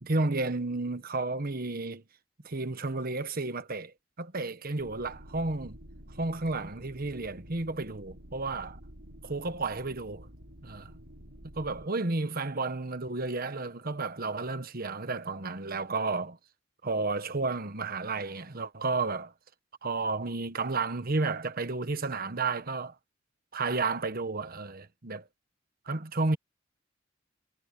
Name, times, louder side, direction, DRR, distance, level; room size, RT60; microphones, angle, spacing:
voice 1, 0.0-2.0 2.4-5.8 6.1-8.8 9.2-10.3 10.6-10.9 11.5-16.4 16.8-19.3 19.8-22.9 23.5-25.3 25.9-26.4, right 3 dB, 50° right, 1.3 m, -32 dB
sound 1, 4.8-11.9, equal, 70° right, 4.3 m, -50 dB
head